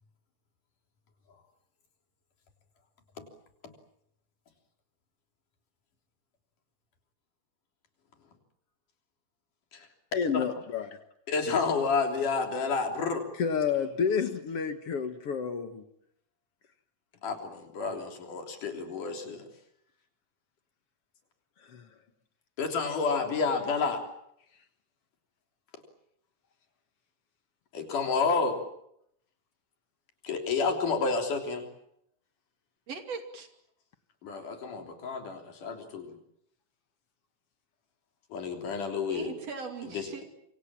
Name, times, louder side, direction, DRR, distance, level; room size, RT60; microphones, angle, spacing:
voice 1, 10.1-10.9 13.4-15.8 21.7-21.8, left 6 dB, 55° left, 2.2 m, -29 dB
voice 2, 11.3-13.2 17.2-19.5 22.6-24.0 27.7-28.6 30.2-31.7 34.2-36.1 38.3-39.3 39.9-40.3, left 4 dB, 90° left, 5.0 m, -30 dB
voice 3, 32.9-33.5 39.1-40.3, right 4 dB, 55° right, 3.7 m, -39 dB
27.0 x 25.5 x 7.5 m
omnidirectional pair, 3.5 m